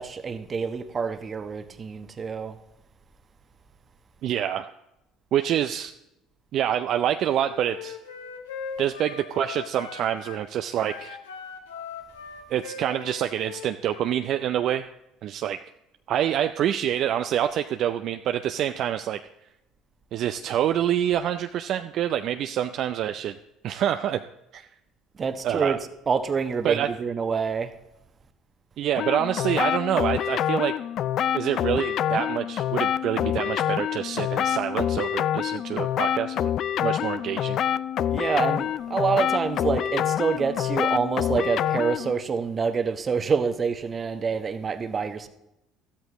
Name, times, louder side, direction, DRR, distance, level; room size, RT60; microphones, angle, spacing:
voice 1, 0.0-2.6 25.2-25.8 26.1-27.7 38.1-45.3, right 5 dB, 35° right, 1.0 m, -27 dB
voice 2, 4.2-4.7 5.3-5.9 6.5-8.0 8.8-11.2 12.5-14.9 15.2-15.6 16.1-19.2 20.1-23.4 23.6-24.2 24.5-24.7 25.4-25.8 26.6-26.9 28.8-30.7 31.3-36.4 36.8-37.6, right 10 dB, 55° right, 0.4 m, -26 dB
Wind instrument woodwind instrument, 7.3-10.4 10.8-14.2, left 5 dB, 85° left, 1.1 m, -40 dB
sound 1, 29.0-42.1, left 10 dB, 55° left, 0.4 m, -26 dB
13.5 x 13.0 x 3.1 m
hypercardioid pair, 65°, 0 cm